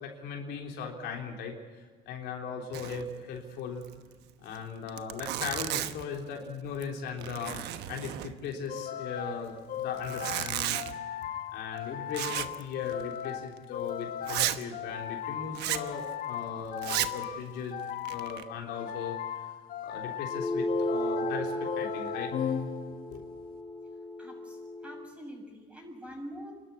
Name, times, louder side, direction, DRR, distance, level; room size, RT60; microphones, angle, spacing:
voice 1, 0.0-1.5 2.1-3.8 4.4-7.6 7.9-10.8 11.1-17.8 18.1-19.5 19.8-22.3 23.1-23.2, left 6 dB, 85° left, 1 dB, 3.8 m, -38 dB
Zipper (clothing), 2.7-3.1 3.4-3.5 3.8-3.9 4.5-4.6 4.9-6.1 6.7-6.9 7.2-8.6 9.9-10.9 12.1-12.6 12.9-13.1 13.6-13.7 14.2-14.6 15.5-15.9 16.8-17.2 17.8-18.4, right 13 dB, 85° right, 1.1 m, -33 dB
sound 1, 8.7-23.2, left 10 dB, 60° left, 1.2 m, -37 dB
sound 2, 20.3-25.1, left 1 dB, 20° left, 3.0 m, -34 dB
voice 2, 24.2-26.5, equal, 5° right, 1 dB, 7.3 m, -45 dB
28.5 x 12.5 x 9.8 m, 1.5 s
cardioid pair, 110°, 17 cm